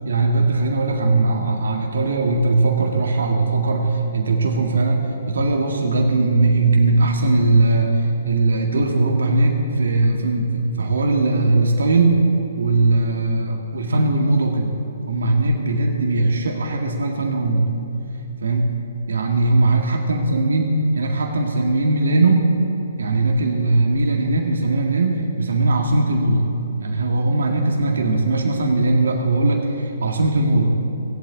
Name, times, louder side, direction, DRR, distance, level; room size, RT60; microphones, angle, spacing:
voice 1, 0.0-14.7 15.1-17.7 18.4-18.7 19.1-22.5 23.0-26.5 26.8-30.7, right 2 dB, 80° right, 1 dB, 1.9 m, -19 dB
17.5 x 8.6 x 8.3 m, 2.9 s
hypercardioid pair, 150°, 0 cm